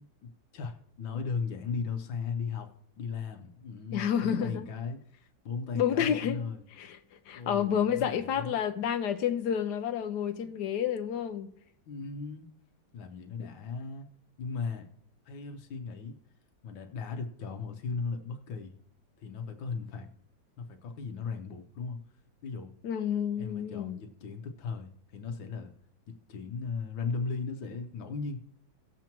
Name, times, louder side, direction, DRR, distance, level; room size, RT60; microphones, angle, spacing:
voice 1, 0.0-5.0 5.4-6.6 7.3-8.6 10.4-10.7 11.9-12.5 12.9-14.1 14.4-14.9 15.2-16.2 16.6-18.8 19.2-20.1 20.6-22.0 22.4-22.7 23.4-25.7 26.1-28.4, left 5 dB, 85° left, 1.7 m, -37 dB
voice 2, 3.9-4.7 5.7-6.4 6.8-7.0 7.3-11.5 22.8-24.0, left 9 dB, 70° left, 1.2 m, -29 dB
18.0 x 7.2 x 3.0 m
omnidirectional pair, 2.0 m